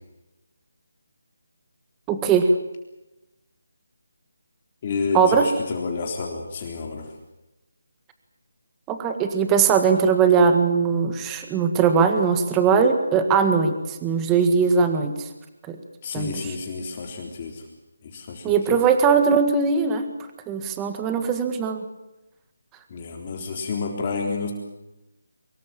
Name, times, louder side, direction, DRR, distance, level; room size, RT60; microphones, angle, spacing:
voice 1, 2.1-2.5 5.1-5.5 8.9-15.3 15.7-15.8 16.1-16.5 18.4-20.1 20.5-21.8, right 6 dB, 10° right, 7 dB, 1.8 m, -20 dB
voice 2, 4.8-7.0 16.0-17.6 18.0-18.8 22.9-24.5, left 4 dB, 30° left, 1 dB, 3.8 m, -30 dB
24.5 x 22.0 x 7.6 m, 0.96 s
figure-of-eight pair, 165°, 0 cm